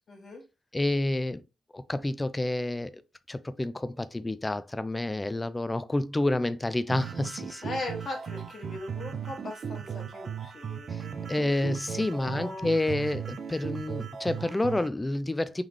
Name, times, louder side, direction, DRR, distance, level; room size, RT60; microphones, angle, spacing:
voice 1, 0.1-0.4 7.6-11.7 12.2-12.7, left 2 dB, 40° left, 1.4 m, -39 dB
voice 2, 0.7-1.4 1.7-3.0 3.3-7.7 10.9-11.0 11.3-15.6, left 1 dB, 10° left, 0.3 m, -29 dB
sound 1, 6.9-14.9, right 7 dB, 45° right, 0.5 m, -37 dB
3.7 x 3.1 x 3.5 m
cardioid pair, 135°, 0 cm